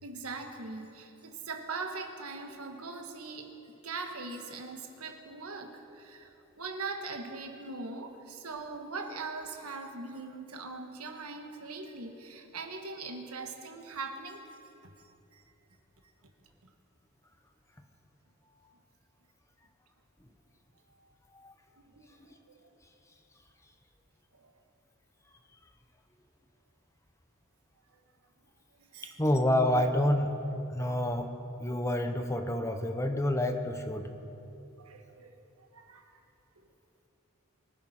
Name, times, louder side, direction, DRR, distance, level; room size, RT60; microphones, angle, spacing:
voice 1, 0.0-3.5 3.8-14.6 15.3-15.4 21.9-22.7 24.4-24.5 28.8-29.2 30.7-30.9 34.8-35.3 35.7-36.1, right 3 dB, 80° right, 4 dB, 1.4 m, -41 dB
voice 2, 29.2-30.4 30.7-31.3 31.6-34.1, left 1 dB, 15° left, 6 dB, 0.8 m, -28 dB
24.0 x 11.0 x 4.3 m, 2.9 s
head